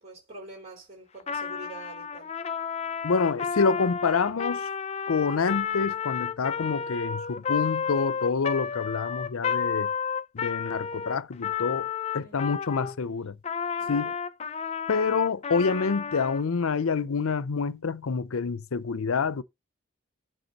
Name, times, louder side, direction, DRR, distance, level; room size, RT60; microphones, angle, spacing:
voice 1, 0.0-2.3 12.2-12.5 13.8-14.1, right 2 dB, 30° right, 3.7 m, -45 dB
Trumpet, 1.2-13.0 13.4-16.4, left 6 dB, 30° left, 0.4 m, -31 dB
voice 2, 3.0-4.7 5.1-9.9 10.3-11.9 12.1-13.4 13.9-14.1 14.9-19.4, left 5 dB, 85° left, 0.6 m, -27 dB
8.0 x 3.7 x 6.6 m
head